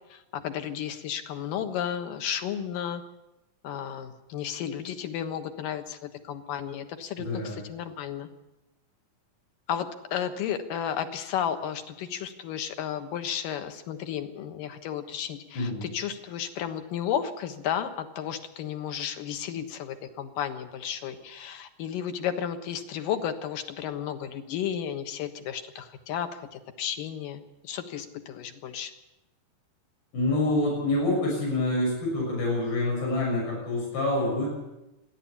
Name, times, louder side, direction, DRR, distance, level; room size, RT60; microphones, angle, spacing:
voice 1, 0.1-3.0 3.6-8.3 9.7-28.9, left 9 dB, 70° left, 8 dB, 2.9 m, -33 dB
voice 2, 7.2-7.6 15.5-15.8 30.1-34.5, left 2 dB, 90° left, -3 dB, 8.6 m, -26 dB
27.5 x 11.0 x 8.5 m, 0.95 s
omnidirectional pair, 4.2 m